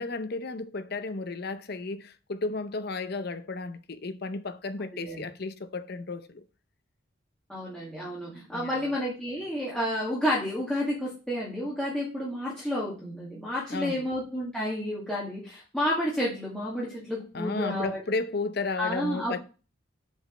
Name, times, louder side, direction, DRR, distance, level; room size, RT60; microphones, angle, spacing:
voice 1, 0.0-6.4 8.5-8.9 13.7-14.1 17.3-19.4, left 3 dB, 50° left, 0.6 m, -33 dB
voice 2, 4.9-5.2 7.5-18.0 18.8-19.4, left 1 dB, 5° left, 2.1 m, -31 dB
6.8 x 5.2 x 5.3 m
head